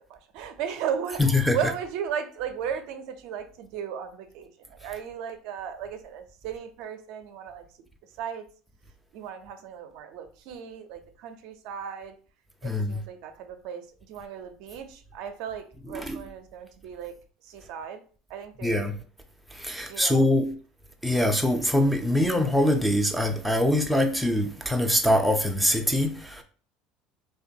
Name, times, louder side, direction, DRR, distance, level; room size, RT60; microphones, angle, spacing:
voice 1, 0.1-4.5 4.8-7.6 8.2-8.4 9.1-12.1 12.6-13.8 14.1-17.1 17.5-18.0 18.3-18.8 19.9-20.3, right 8 dB, 70° right, 0.4 m, -35 dB
voice 2, 1.2-1.6 12.6-13.0 15.9-16.2 18.6-18.9 19.6-20.5 21.0-26.4, left 1 dB, ahead, 0.4 m, -23 dB
2.9 x 2.2 x 2.6 m
cardioid pair, 135°, 0 cm